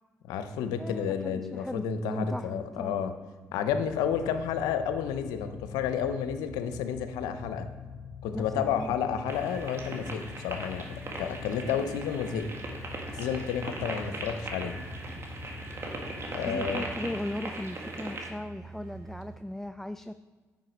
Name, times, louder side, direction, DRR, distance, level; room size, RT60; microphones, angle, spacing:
voice 1, 0.3-3.1 3.5-7.7 8.2-12.5 13.1-14.8 16.3-16.8, left 7 dB, 85° left, 9 dB, 0.6 m, -31 dB
voice 2, 0.8-3.0 8.3-8.9 16.5-20.1, left 1 dB, 5° left, 10 dB, 0.3 m, -37 dB
sound 1, 3.7-17.0, left 6 dB, 50° left, 1.5 m, -44 dB
sound 2, 9.3-18.3, right 2 dB, 45° right, 1.7 m, -39 dB
sound 3, 12.6-19.4, right 5 dB, 60° right, 2.1 m, -47 dB
9.3 x 4.8 x 5.1 m, 1.4 s
supercardioid pair, 55°, 6 cm